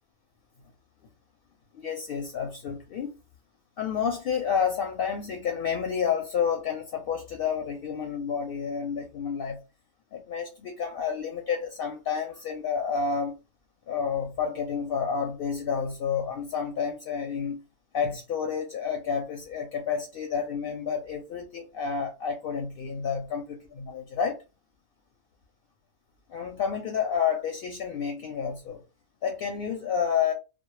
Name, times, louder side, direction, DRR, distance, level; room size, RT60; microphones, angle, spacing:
voice 1, 1.7-3.1 3.8-9.6 10.1-13.3 13.9-17.6 17.9-24.4 26.3-28.8 29.2-30.3, left 6 dB, 65° left, 0.7 m, -30 dB
2.2 x 2.0 x 3.0 m
omnidirectional pair, 1.2 m